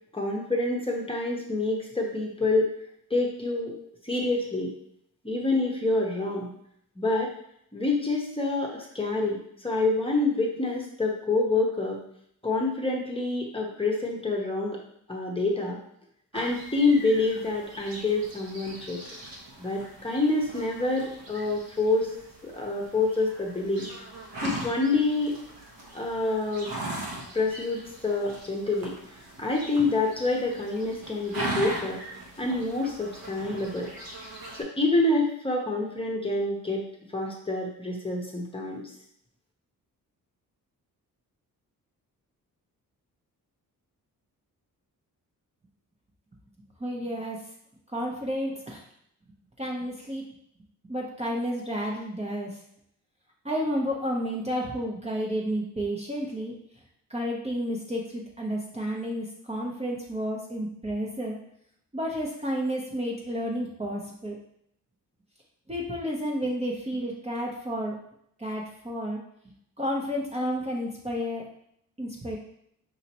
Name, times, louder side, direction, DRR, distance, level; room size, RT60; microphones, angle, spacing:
voice 1, 0.1-2.7 3.1-3.7 4.0-4.7 5.2-6.5 7.0-7.3 7.7-12.0 12.4-14.8 15.1-15.8 16.3-19.0 19.6-22.1 22.4-23.9 24.4-25.3 25.9-26.7 27.3-28.9 29.4-32.0 32.4-33.9 34.5-36.8 37.1-38.8, left 2 dB, 15° left, -2 dB, 0.9 m, -27 dB
sound 1, 16.3-34.6, right 1 dB, 75° right, 1.2 m, -40 dB
voice 2, 46.8-47.4 47.9-48.8 49.6-50.2 50.9-52.6 53.4-56.5 57.1-61.4 61.9-64.4 65.7-67.9 68.4-71.5 72.0-72.4, equal, 20° right, -2 dB, 0.8 m, -31 dB
5.2 x 2.8 x 2.9 m, 0.71 s
cardioid pair, 80°, 36 cm